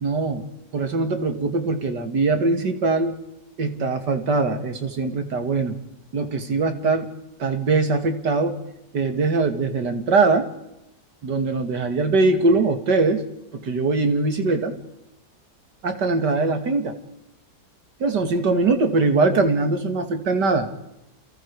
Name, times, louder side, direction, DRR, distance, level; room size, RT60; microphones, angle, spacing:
voice 1, 0.0-0.4 0.7-3.2 3.6-5.8 6.1-7.1 7.4-8.6 8.9-10.5 11.2-13.3 13.5-14.8 15.8-17.0 18.0-20.7, right 3 dB, 70° right, 7 dB, 2.8 m, -22 dB
29.5 x 29.0 x 4.8 m, 0.89 s
omnidirectional pair, 1.9 m